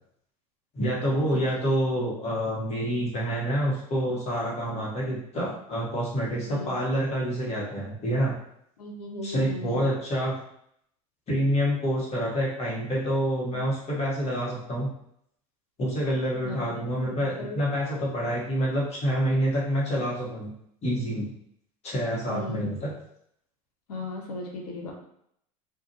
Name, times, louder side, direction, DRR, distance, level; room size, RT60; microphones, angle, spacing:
voice 1, 0.7-8.3 9.2-10.3 11.3-14.9 15.8-20.5 20.8-21.3 21.8-22.9, equal, 35° left, -4 dB, 1.3 m, -27 dB
voice 2, 8.8-9.8 16.4-17.6 22.3-22.7 23.9-24.9, left 2 dB, 85° left, 0 dB, 0.7 m, -36 dB
2.5 x 2.5 x 2.7 m, 0.71 s
hypercardioid pair, 85°, 20 cm